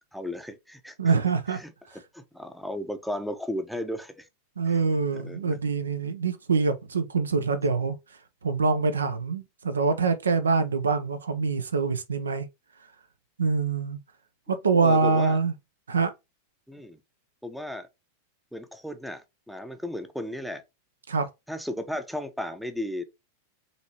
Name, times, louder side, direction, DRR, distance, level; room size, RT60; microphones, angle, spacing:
voice 1, 0.1-1.1 1.5-1.7 2.1-4.3 4.7-4.8 5.1-5.6 14.7-15.4 16.7-17.0 17.4-17.9 18.5-20.6 21.5-23.0, left 1 dB, ahead, 0.6 m, -35 dB
voice 2, 1.0-1.6 4.6-8.0 8.4-12.5 13.4-14.0 14.5-15.5 15.9-16.1 21.1-21.3, right 4 dB, 70° right, 0.5 m, -25 dB
5.3 x 2.9 x 2.8 m
figure-of-eight pair, 90°, 0 cm